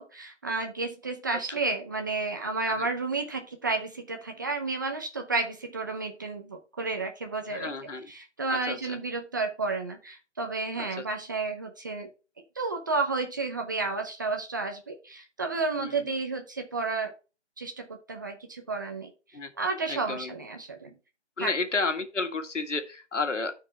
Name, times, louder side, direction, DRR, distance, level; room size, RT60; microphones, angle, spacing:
voice 1, 0.0-7.7 8.1-12.1 12.6-17.1 17.6-19.1 19.6-20.9 21.4-21.5, right 3 dB, 15° right, 4 dB, 0.6 m, -31 dB
voice 2, 7.5-8.1 8.5-9.0 10.8-11.0 15.8-16.1 19.3-19.5 19.9-20.3 21.4-23.5, left 3 dB, 90° left, 7 dB, 1.9 m, -32 dB
13.0 x 4.7 x 3.3 m, 0.31 s
figure-of-eight pair, 160°, 35 cm